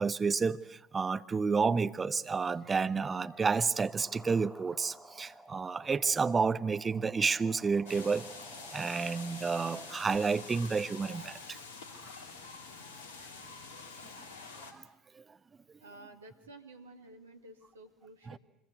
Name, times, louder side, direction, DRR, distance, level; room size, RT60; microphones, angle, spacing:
voice 1, 0.0-8.3 8.7-11.6 14.7-14.8 15.2-15.3 18.3-18.4, right 5 dB, 25° right, 1.0 m, -30 dB
sound 1, 3.2-10.2, right 1 dB, 5° right, 3.9 m, -53 dB
sound 2, 7.9-14.7, left 4 dB, 70° left, 3.2 m, -47 dB
voice 2, 15.8-18.4, right 2 dB, 80° right, 2.1 m, -52 dB
25.0 x 22.0 x 8.3 m
figure-of-eight pair, 65°, 0 cm